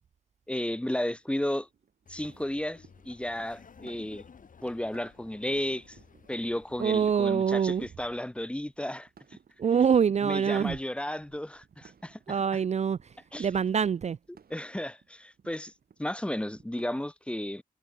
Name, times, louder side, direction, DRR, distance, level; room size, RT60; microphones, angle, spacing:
voice 1, 0.5-1.7 2.1-4.2 4.6-6.0 6.3-9.1 10.2-12.2 13.3-13.5 14.5-15.7 16.0-17.6, left 1 dB, 5° left, 0.8 m, -33 dB
sound 1, 0.6-16.9, right 6 dB, 75° right, 7.5 m, -60 dB
Laughter, 2.1-7.8, left 6 dB, 60° left, 2.0 m, -54 dB
voice 2, 6.8-7.9 9.6-10.8 12.3-13.1 13.4-14.2, right 7 dB, 45° right, 0.4 m, -25 dB
wide cardioid pair, 110°, 16 cm